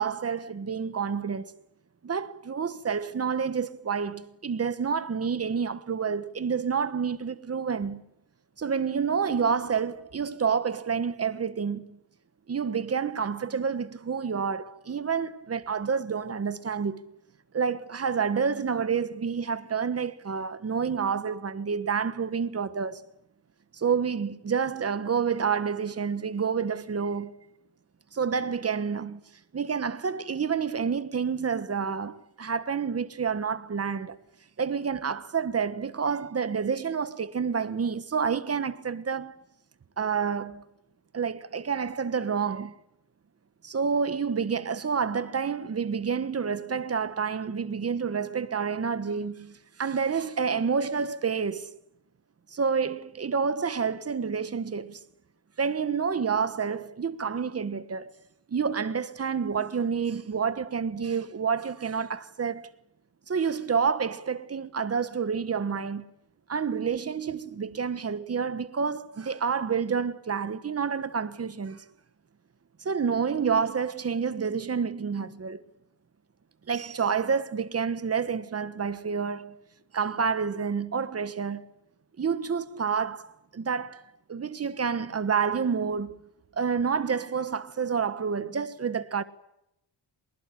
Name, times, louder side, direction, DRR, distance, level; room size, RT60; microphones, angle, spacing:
voice 1, 0.0-1.5 2.0-8.0 8.6-12.0 12.5-17.1 17.5-23.0 23.7-27.3 28.1-29.2 29.5-34.2 34.6-39.4 40.0-40.6 41.1-42.8 43.6-51.7 52.5-55.0 55.6-58.1 58.5-62.7 63.3-66.1 66.5-71.8 72.8-75.6 76.7-79.6 79.9-81.7 82.2-84.0 84.3-86.2 86.6-89.2, right 6 dB, 30° right, 1.4 m, -29 dB
25.0 x 21.0 x 9.8 m
wide cardioid pair, 165°, 47 cm